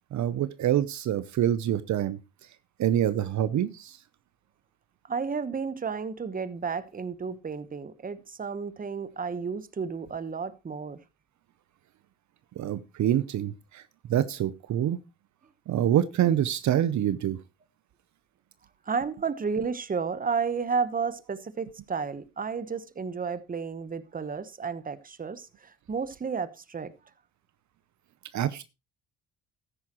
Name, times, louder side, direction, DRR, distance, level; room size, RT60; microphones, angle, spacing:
voice 1, 0.1-2.2 2.8-4.0 12.6-13.8 14.1-15.0 15.7-17.4 28.3-28.6, right 11 dB, 60° right, 0.7 m, -26 dB
voice 2, 5.1-11.0 18.9-26.9, right 5 dB, 25° right, 1.0 m, -32 dB
13.5 x 10.0 x 3.0 m
cardioid pair, 90°, 32 cm